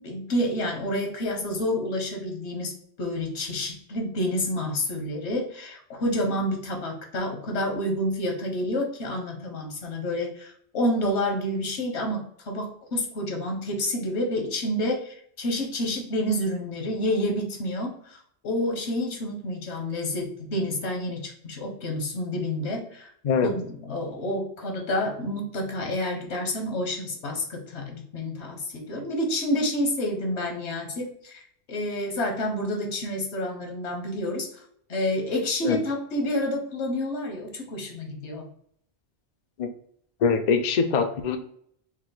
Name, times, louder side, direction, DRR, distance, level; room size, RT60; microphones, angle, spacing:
voice 1, 0.0-2.7 3.0-18.2 18.4-23.1 23.4-31.4 31.7-34.5 34.9-38.5, left 1 dB, 85° left, 2 dB, 1.3 m, -29 dB
voice 2, 40.2-41.4, left 5 dB, 55° left, 6 dB, 0.5 m, -23 dB
4.6 x 2.1 x 3.8 m, 0.65 s
omnidirectional pair, 1.1 m